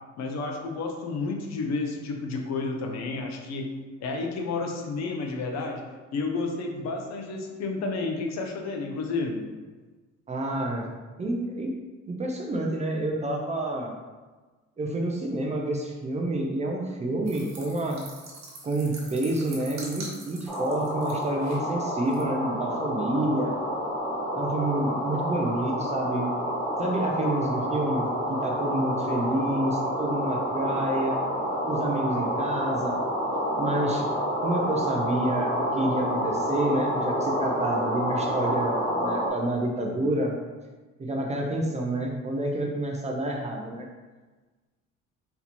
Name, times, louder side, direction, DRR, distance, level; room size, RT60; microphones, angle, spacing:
voice 1, 0.2-3.7 4.0-5.8 6.1-9.4, left 3 dB, 65° left, 2 dB, 0.8 m, -31 dB
voice 2, 10.3-10.9 11.2-11.7 12.0-13.9 14.8-18.0 18.6-23.6 24.3-26.4 26.8-31.2 31.7-33.0 33.5-40.3 41.0-43.8, right 1 dB, 25° right, 0 dB, 0.5 m, -28 dB
sound 1, 17.3-21.6 22.1-22.2, right 2 dB, 65° right, 1.4 m, -43 dB
sound 2, 20.5-39.3, equal, ahead, 1.2 m, -28 dB
4.3 x 2.8 x 4.2 m, 1.3 s
cardioid pair, 165°, 30 cm